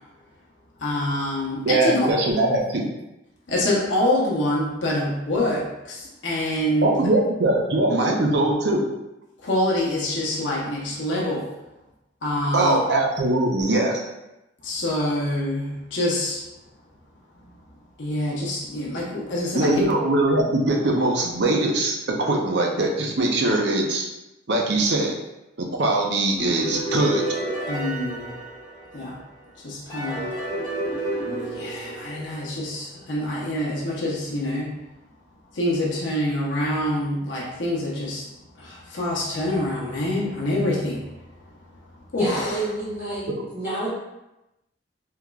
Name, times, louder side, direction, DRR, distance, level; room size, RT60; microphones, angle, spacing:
voice 1, 0.8-2.0 3.5-7.0 9.4-11.5 12.2-12.8 14.6-16.4 18.0-19.8 27.7-28.3 28.9-29.2 29.6-30.3 31.5-34.7 35.5-38.3 38.6-41.1 42.1-42.6, left 1 dB, 75° left, -5 dB, 0.7 m, -26 dB
voice 2, 1.6-2.9 6.8-8.9 12.5-14.0 19.5-24.1 24.5-25.1 25.8-27.2 43.4-43.5, right 2 dB, 60° right, 0 dB, 0.5 m, -21 dB
sound 1, 26.4-29.2 29.9-32.7, right 1 dB, 25° left, 1.1 m, -30 dB
voice 3, 42.2-43.3 43.5-43.9, right 2 dB, 10° right, -12 dB, 1.2 m, -29 dB
3.7 x 2.9 x 2.3 m, 0.94 s
head